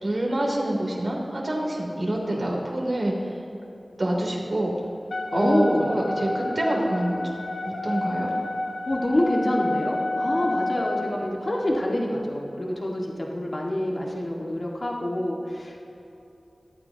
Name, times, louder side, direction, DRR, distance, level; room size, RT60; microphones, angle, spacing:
voice 1, 0.0-3.4 4.0-4.7 5.3-7.3 7.6-8.3, right 1 dB, 60° right, -2 dB, 3.2 m, -26 dB
Wind instrument woodwind instrument, 5.1-11.2, left 2 dB, 85° left, 1.4 m, -30 dB
voice 2, 5.3-5.9 8.9-15.8, left 1 dB, 55° left, -2 dB, 1.9 m, -26 dB
23.5 x 9.1 x 2.9 m, 3.0 s
wide cardioid pair, 45°, 0 cm